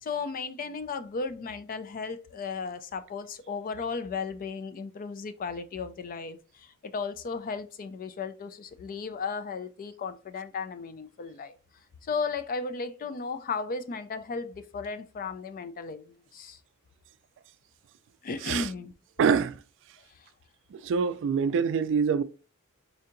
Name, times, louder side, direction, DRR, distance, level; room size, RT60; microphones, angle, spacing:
voice 1, 0.0-11.6 12.0-16.6 18.2-18.9 20.2-20.3, left 4 dB, 40° left, 0.4 m, -35 dB
voice 2, 19.2-19.6 20.7-22.2, right 6 dB, 60° right, 0.3 m, -25 dB
4.4 x 2.7 x 2.5 m
head